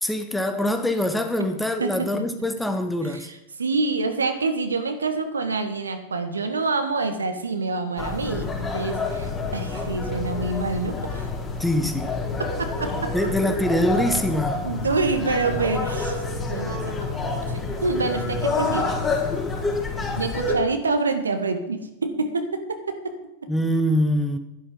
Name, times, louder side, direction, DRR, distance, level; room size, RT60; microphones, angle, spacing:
voice 1, 0.0-3.3 11.6-12.1 13.1-14.6 23.5-24.4, left 1 dB, 5° left, 1.3 m, -24 dB
voice 2, 1.8-2.3 3.1-11.3 12.6-13.1 14.6-16.2 16.5-17.1 17.5-19.0 20.1-23.0, right 3 dB, 75° right, 1.6 m, -27 dB
sound 1, 8.0-20.6, left 3 dB, 20° left, 3.9 m, -28 dB
12.0 x 11.5 x 5.4 m
figure-of-eight pair, 90°, 0 cm